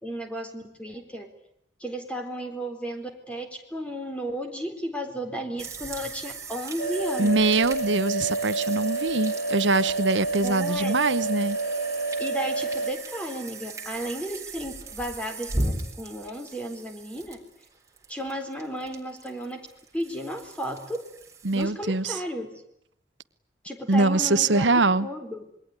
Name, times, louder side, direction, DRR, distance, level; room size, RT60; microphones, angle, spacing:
voice 1, 0.0-1.3 1.8-7.6 10.4-10.9 12.2-17.4 18.1-19.6 19.9-21.0 21.5-22.5 23.6-24.7 25.0-25.4, equal, 5° left, 4 dB, 4.0 m, -34 dB
sound 1, 5.6-21.7, right 2 dB, 15° right, 3.9 m, -38 dB
sound 2, 6.8-12.9, right 2 dB, 55° left, 4.3 m, -29 dB
voice 2, 7.2-11.6 21.4-22.2 23.9-25.1, right 3 dB, 85° right, 13 dB, 1.1 m, -23 dB
27.0 x 22.0 x 9.8 m, 0.77 s
head